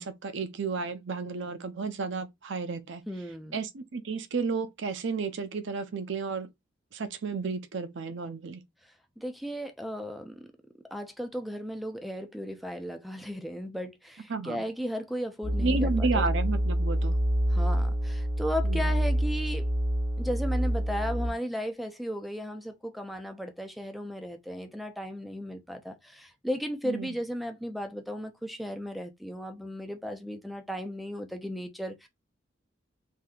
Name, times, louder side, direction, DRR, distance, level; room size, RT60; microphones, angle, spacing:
voice 1, 0.0-3.0 3.5-6.5 6.9-8.6 14.3-14.6 15.6-17.2 18.6-18.9 26.8-27.1, right 4 dB, 65° right, 0.5 m, -32 dB
voice 2, 3.1-3.6 8.8-10.5 10.9-16.3 17.5-19.7 20.2-32.1, equal, ahead, 0.4 m, -35 dB
sound 1, 15.4-21.3, equal, 20° left, 0.9 m, -27 dB
3.5 x 2.7 x 2.3 m
head